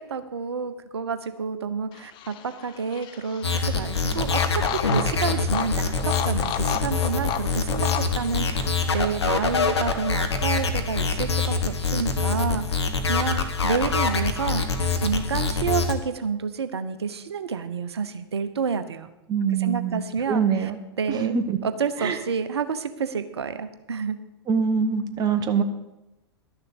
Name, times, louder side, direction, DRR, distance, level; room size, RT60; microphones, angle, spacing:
voice 1, 0.0-8.7 8.9-12.6 13.1-14.6 15.0-19.1 19.6-20.7 21.0-24.2, right 6 dB, 75° right, 11 dB, 1.0 m, -29 dB
sound 1, 1.9-10.1, left 11 dB, 35° left, 0.8 m, -34 dB
sound 2, 3.4-15.9, left 4 dB, 80° left, 1.3 m, -25 dB
voice 2, 19.3-20.0 20.3-20.8 21.1-21.6 22.0-22.2 24.5-25.6, right 6 dB, 30° right, 7 dB, 1.3 m, -24 dB
12.5 x 6.8 x 7.2 m, 0.95 s
figure-of-eight pair, 95°, 14 cm